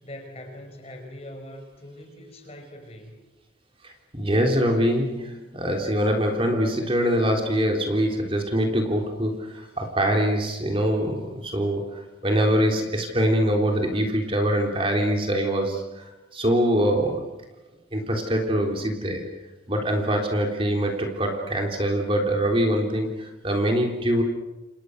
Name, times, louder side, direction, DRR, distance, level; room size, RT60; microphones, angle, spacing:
voice 1, 0.0-3.2, left 1 dB, 30° left, 4 dB, 5.5 m, -42 dB
voice 2, 3.8-17.3 17.9-19.3 19.7-24.2, equal, 30° right, 2 dB, 3.7 m, -24 dB
29.5 x 29.0 x 6.7 m, 1.0 s
head